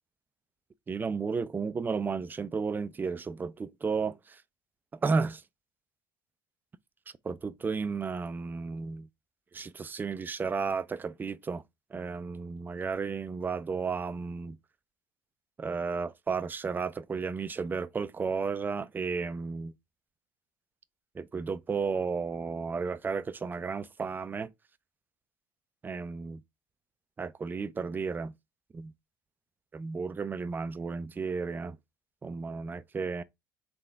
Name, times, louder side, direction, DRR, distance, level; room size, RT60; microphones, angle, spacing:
voice 1, 0.9-4.4 5.0-5.4 7.2-9.1 9.5-11.6 11.9-14.6 15.6-19.7 21.2-24.5 25.8-26.4 27.2-28.3 28.7-28.9 29.7-31.8 32.2-33.2, right 5 dB, 15° right, 0.4 m, -33 dB
3.8 x 3.6 x 3.3 m
figure-of-eight pair, 65°, 11 cm